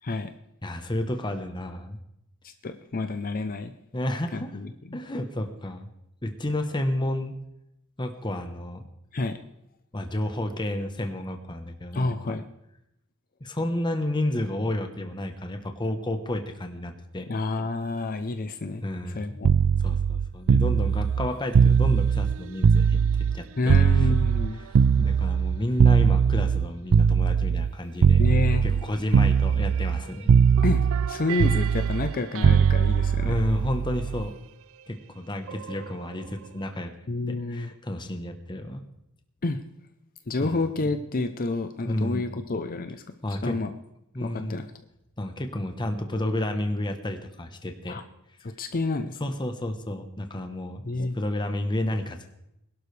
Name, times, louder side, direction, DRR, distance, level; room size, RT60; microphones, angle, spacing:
voice 1, 0.6-2.0 3.9-4.6 4.9-5.9 6.2-7.3 8.0-8.8 9.9-12.4 13.4-17.3 18.8-19.4 19.8-24.1 24.6-28.2 28.6-30.3 33.2-34.3 34.9-36.9 37.3-38.8 40.4-40.6 41.9-42.3 43.2-43.6 44.1-44.7 45.2-48.0 49.2-50.9 51.1-52.3, left 1 dB, 20° left, 6 dB, 1.0 m, -31 dB
voice 2, 2.4-3.7 4.3-5.0 9.1-9.4 11.9-12.4 17.3-18.8 19.1-19.5 23.6-24.6 28.2-28.6 30.6-33.3 37.1-37.7 39.4-39.6 40.3-43.0 43.4-43.7 44.2-44.7 47.9-48.0 48.4-49.2 50.9-51.2, left 2 dB, 40° left, 8 dB, 0.6 m, -29 dB
sound 1, 19.4-23.4 23.7-27.7 28.0-28.9 29.1-30.0 30.3-34.3 35.5-35.7, right 6 dB, 65° right, 0.4 m, -20 dB
21.5 x 12.0 x 3.3 m, 0.81 s
head